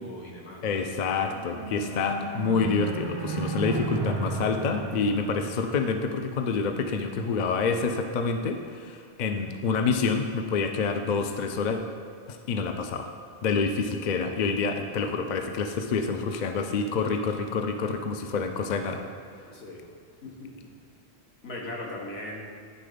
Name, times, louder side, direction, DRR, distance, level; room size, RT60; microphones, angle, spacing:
voice 1, 0.0-0.7 19.4-19.8 20.2-20.8 21.4-22.4, left 1 dB, 70° left, -2 dB, 1.5 m, -39 dB
voice 2, 0.6-11.8 12.3-13.1 13.4-19.0, left 5 dB, 55° left, 5 dB, 0.5 m, -27 dB
sound 1, 0.9-6.4, right 3 dB, 30° right, 0.5 m, -34 dB
10.0 x 3.8 x 5.0 m, 2.1 s
omnidirectional pair, 1.1 m